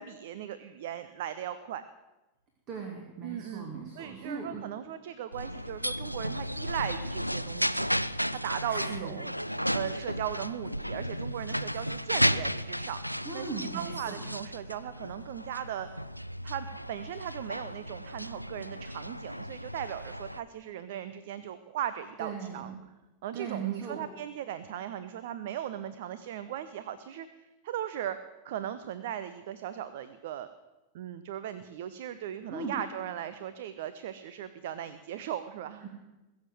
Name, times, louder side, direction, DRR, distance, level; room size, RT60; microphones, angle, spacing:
voice 1, 0.0-1.8 3.2-7.9 8.3-9.3 9.7-13.0 13.3-13.5 13.7-15.9 16.4-22.7 23.2-28.2 28.4-30.5 30.9-35.8, right 10 dB, 55° right, 13 dB, 0.7 m, -38 dB
voice 2, 2.7-4.6 8.7-9.2 13.2-14.2 22.2-22.7 23.3-24.0 32.5-32.8 35.8-35.9, right 5 dB, 35° right, 1 dB, 2.6 m, -38 dB
sound 1, 5.3-20.4, equal, 90° left, 0.4 m, -34 dB
21.5 x 7.3 x 7.7 m, 1.1 s
figure-of-eight pair, 90°, 0 cm